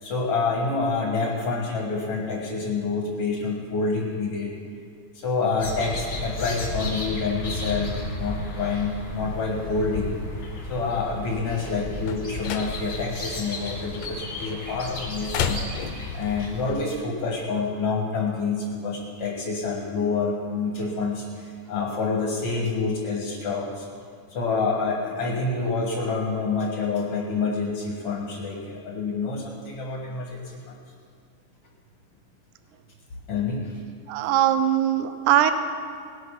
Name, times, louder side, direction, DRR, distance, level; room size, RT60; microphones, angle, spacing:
voice 1, 0.0-4.5 5.1-10.2 10.7-23.9 24.3-30.8 33.3-33.8, left 4 dB, 50° left, -1 dB, 2.1 m, -27 dB
sound 1, 5.6-16.7, left 1 dB, 25° left, 2.2 m, -33 dB
sound 2, 11.5-16.4, left 6 dB, 80° left, 2.5 m, -34 dB
voice 2, 34.1-35.5, right 11 dB, 75° right, 9 dB, 2.0 m, -21 dB
19.0 x 9.0 x 5.7 m, 2.2 s
omnidirectional pair, 3.9 m